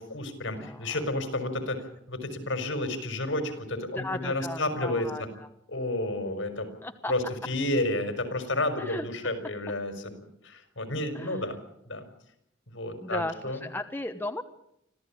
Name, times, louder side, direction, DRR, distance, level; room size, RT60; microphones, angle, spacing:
voice 1, 0.0-1.8 2.1-5.3 5.7-6.7 7.1-10.1 10.4-11.6 11.8-12.1 12.7-13.6, left 1 dB, 75° left, 8 dB, 5.2 m, -31 dB
voice 2, 0.6-1.0 3.9-5.5 6.8-7.1 8.8-9.1 11.1-11.5 13.0-14.4, left 2 dB, 10° left, 6 dB, 1.1 m, -36 dB
25.5 x 15.5 x 8.8 m, 0.77 s
head